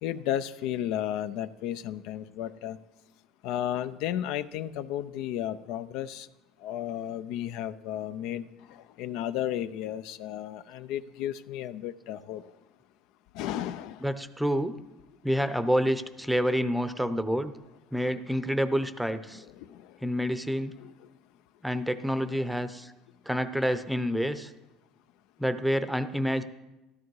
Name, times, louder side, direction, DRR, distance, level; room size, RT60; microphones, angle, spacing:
voice 1, 0.0-2.8 3.4-6.3 6.6-12.4 13.3-14.1 19.4-19.8 20.8-20.9, left 11 dB, 70° left, 13 dB, 0.5 m, -33 dB
voice 2, 14.0-14.7 15.2-17.5 17.9-19.4 20.0-20.7 21.6-22.9 23.3-24.5 25.4-26.4, equal, ahead, 11 dB, 0.7 m, -28 dB
13.5 x 13.0 x 4.8 m, 1.0 s
cardioid pair, 140°, 0 cm